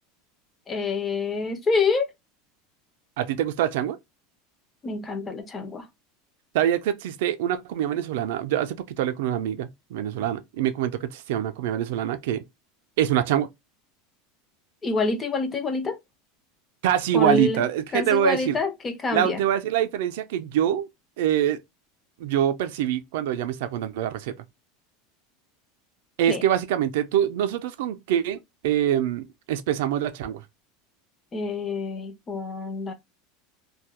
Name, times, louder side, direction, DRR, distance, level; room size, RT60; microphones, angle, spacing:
voice 1, 0.7-2.1 4.8-5.9 14.8-16.0 17.1-17.6 17.9-19.4 26.3-26.4 31.3-32.9, left 4 dB, 15° left, 0.3 m, -26 dB
voice 2, 3.2-4.0 6.5-12.4 13.0-13.5 16.8-18.6 19.1-20.9 21.2-21.6 22.2-24.4 26.2-30.4, right 11 dB, 70° right, 0.3 m, -25 dB
2.2 x 2.0 x 2.8 m
supercardioid pair, 170°, 0 cm